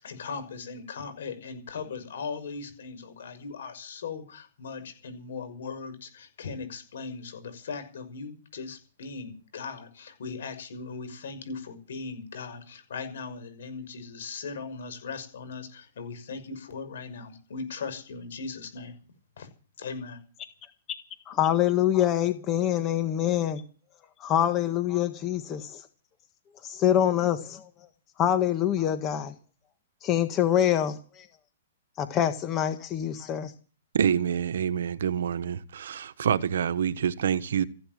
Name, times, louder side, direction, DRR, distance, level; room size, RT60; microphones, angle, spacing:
voice 1, 0.0-18.9 19.4-19.5 19.8-20.2, left 5 dB, 75° left, 6.1 m, -38 dB
voice 2, 21.3-23.6 24.2-25.8 26.6-27.7 28.2-29.3 30.0-31.3 32.0-33.5, left 11 dB, 25° left, 1.6 m, -25 dB
voice 3, 33.9-37.6, right 8 dB, 75° right, 1.3 m, -27 dB
15.5 x 11.5 x 7.7 m
hypercardioid pair, 150°, 0 cm